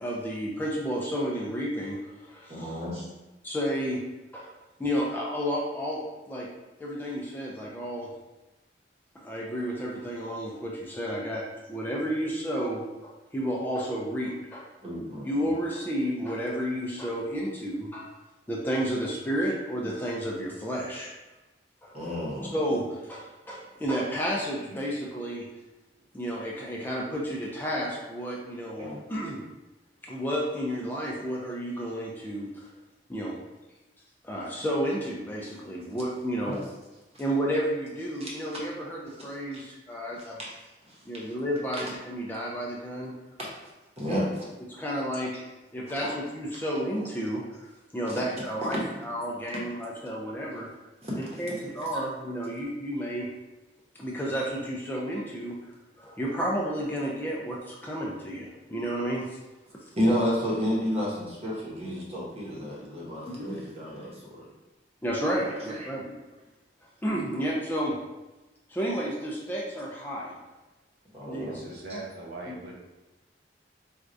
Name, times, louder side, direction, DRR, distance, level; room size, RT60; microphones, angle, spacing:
voice 1, 0.0-2.8 3.4-4.0 4.3-4.5 4.8-6.0 6.3-6.5 6.8-8.1 9.1-11.4 11.7-14.7 15.2-18.1 18.5-21.1 21.8-21.9 22.5-25.5 26.1-29.4 30.0-32.7 33.1-33.3 34.2-36.6 37.2-40.4 41.1-43.1 44.1-44.2 44.7-45.4 45.7-50.7 51.1-53.3 54.0-55.6 56.0-59.3 63.2-63.6 65.0-66.1 67.0-67.9 68.7-70.3 71.2-71.6 71.9-72.0 72.5-72.6, equal, 10° left, -3 dB, 0.4 m, -31 dB
voice 2, 2.5-3.0 14.8-15.5 21.9-22.5 28.8-29.0 36.4-36.6 38.2-38.3 44.0-44.3 46.0-46.1 48.1-48.2 51.0-51.5 60.0-64.5 65.5-65.9 71.1-71.6, equal, 35° right, -5 dB, 0.9 m, -31 dB
voice 3, 71.4-72.7, right 2 dB, 55° right, -2 dB, 0.6 m, -40 dB
4.2 x 2.3 x 2.5 m, 1.1 s
head